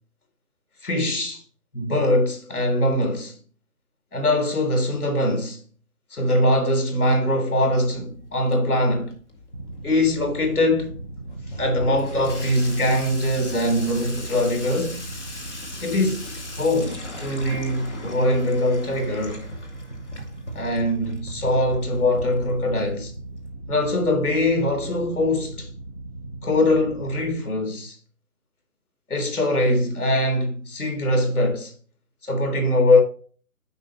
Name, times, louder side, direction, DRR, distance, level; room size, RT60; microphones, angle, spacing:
voice 1, 0.8-1.4 1.7-3.3 4.1-5.6 6.1-9.1 9.8-10.9 11.6-15.0 15.8-16.3 16.6-19.4 20.6-23.1 23.7-25.7 26.4-28.0 29.1-31.7 32.2-33.0, left 1 dB, 90° left, 3.4 m, -22 dB
Water tap faucet / Sink (filling or washing), 7.5-23.5, left 1 dB, 50° left, 2.2 m, -39 dB
sound 1, 9.5-27.3, right 2 dB, 30° left, 0.6 m, -38 dB
10.0 x 5.8 x 2.9 m
hypercardioid pair, 175°, 43 cm